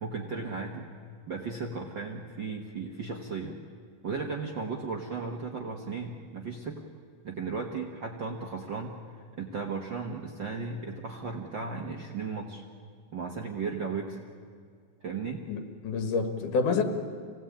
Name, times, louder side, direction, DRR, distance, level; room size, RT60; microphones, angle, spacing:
voice 1, 0.0-0.9 1.3-3.6 4.0-6.8 7.2-9.0 9.4-12.6 13.1-14.2 15.0-15.4, right 4 dB, 50° right, 1 dB, 1.5 m, -35 dB
voice 2, 15.5-16.8, left 4 dB, 80° left, 6 dB, 3.2 m, -28 dB
26.0 x 17.5 x 8.8 m, 2.1 s
omnidirectional pair, 3.6 m